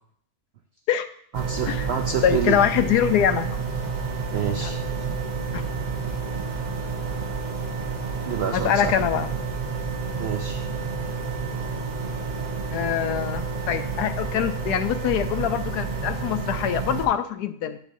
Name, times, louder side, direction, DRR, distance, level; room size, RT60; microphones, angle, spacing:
sound 1, 1.3-17.1, right 5 dB, 35° right, 0.8 m, -29 dB
voice 1, 1.3-2.7 4.3-4.8 8.2-8.9 10.2-10.7, right 7 dB, 70° right, 5 dB, 0.6 m, -28 dB
voice 2, 2.2-3.5 5.5-5.6 8.5-9.3 12.7-17.8, left 9 dB, 85° left, 10 dB, 1.2 m, -24 dB
9.3 x 8.7 x 2.6 m, 0.62 s
omnidirectional pair, 1.7 m